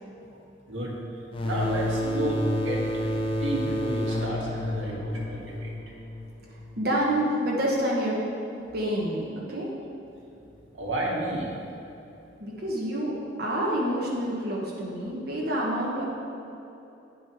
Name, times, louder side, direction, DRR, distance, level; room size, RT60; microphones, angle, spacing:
sound 1, 1.3-6.8, equal, 25° left, 0.6 m, -30 dB
voice 1, 1.4-3.1 3.3-5.7 10.7-11.5, right 1 dB, 75° right, -4 dB, 1.9 m, -31 dB
voice 2, 6.8-8.2 8.7-9.7 12.4-16.0, right 1 dB, 50° right, -4 dB, 1.3 m, -28 dB
10.5 x 5.4 x 4.6 m, 2.9 s
head